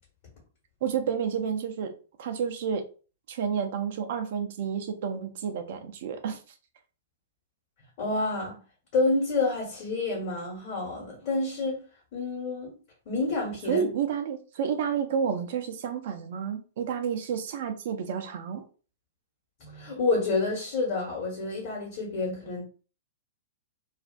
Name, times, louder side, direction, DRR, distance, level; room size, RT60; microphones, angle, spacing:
voice 1, 0.8-2.9 3.3-6.4 13.7-18.6, right 7 dB, 55° right, 0.4 m, -30 dB
voice 2, 8.0-8.6 8.9-11.8 12.1-12.7 13.0-13.8 19.6-22.6, left 3 dB, 45° left, 1.1 m, -28 dB
2.5 x 2.4 x 2.2 m
figure-of-eight pair, 105°, 0 cm